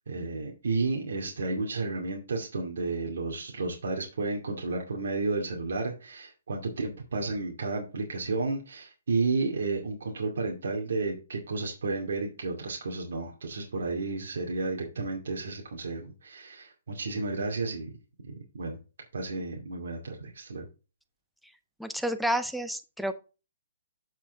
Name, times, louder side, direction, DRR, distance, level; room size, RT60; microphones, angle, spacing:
voice 1, 0.1-17.9 18.2-18.8 19.1-20.7, right 3 dB, 70° right, 0 dB, 2.3 m, -32 dB
voice 2, 21.8-23.1, equal, ahead, 9 dB, 0.5 m, -30 dB
8.3 x 6.4 x 3.5 m, 0.32 s
hypercardioid pair, 165°, 0 cm